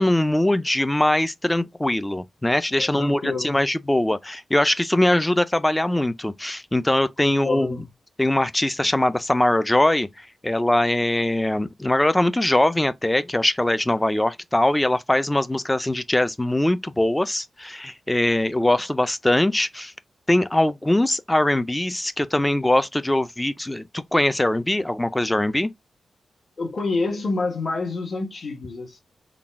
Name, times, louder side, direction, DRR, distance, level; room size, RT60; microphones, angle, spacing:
voice 1, 0.0-7.8 8.2-10.1 10.4-19.9 20.3-25.7, left 1 dB, 10° left, 0.3 m, -22 dB
voice 2, 2.7-3.5 7.2-7.9 26.6-29.0, left 3 dB, 40° left, 1.2 m, -28 dB
3.8 x 2.2 x 3.5 m
wide cardioid pair, 135°, 0 cm